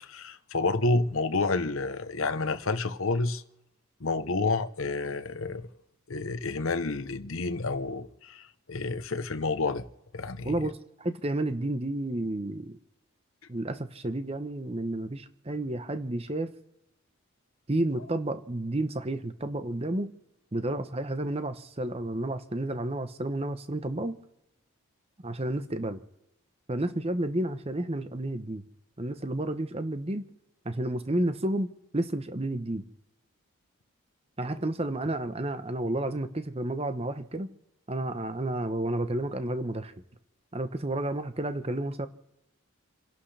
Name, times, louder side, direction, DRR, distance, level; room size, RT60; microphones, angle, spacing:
voice 1, 0.0-3.4 4.0-5.7 6.1-9.8 10.1-10.6, left 3 dB, 70° left, 0.9 m, -29 dB
voice 2, 10.4-12.8 13.5-16.5 17.7-20.1 20.5-24.2 25.2-26.0 26.7-28.6 29.0-30.3 30.6-32.9 34.4-37.5 37.9-39.9 40.5-42.1, right 1 dB, 25° right, 0.9 m, -31 dB
29.5 x 11.5 x 3.4 m
head